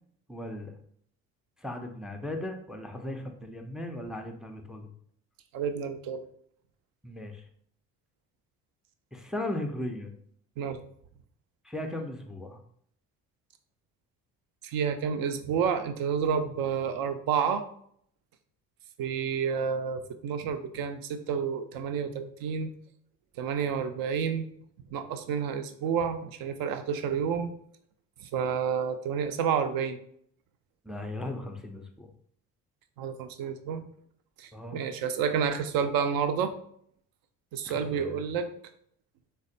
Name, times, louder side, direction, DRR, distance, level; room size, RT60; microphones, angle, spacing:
voice 1, 0.3-0.7 1.6-4.9 7.0-7.4 9.1-10.1 11.6-12.6 30.8-32.1 34.5-34.8 37.6-38.2, left 1 dB, ahead, 4 dB, 0.3 m, -37 dB
voice 2, 5.5-6.2 10.6-10.8 14.6-17.6 19.0-22.7 23.4-24.5 24.9-27.5 28.3-30.0 33.0-33.9 34.4-36.5 37.5-38.5, right 7 dB, 60° right, 8 dB, 0.5 m, -30 dB
3.3 x 2.2 x 2.6 m, 0.65 s
hypercardioid pair, 60°, 40 cm